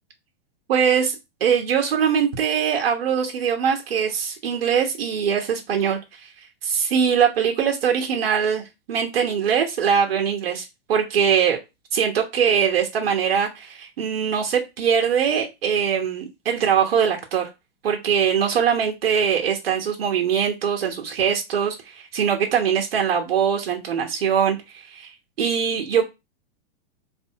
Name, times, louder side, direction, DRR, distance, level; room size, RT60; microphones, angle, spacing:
voice 1, 0.7-6.0 6.6-11.6 11.9-17.5 17.8-21.8 22.1-24.6 24.9-25.1 25.4-26.0, right 7 dB, 80° right, 1 dB, 1.3 m, -22 dB
3.6 x 2.7 x 4.7 m, 0.24 s
hypercardioid pair, 140°, 29 cm